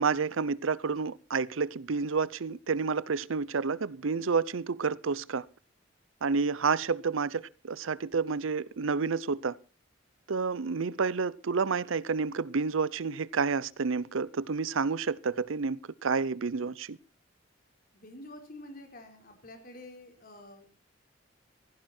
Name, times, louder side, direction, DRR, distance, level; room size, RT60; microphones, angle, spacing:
voice 1, 0.0-5.5 6.2-9.6 10.3-17.0, right 5 dB, 80° right, 0.6 m, -30 dB
voice 2, 17.9-20.7, left 1 dB, 45° left, 4.5 m, -48 dB
16.0 x 15.5 x 4.4 m
head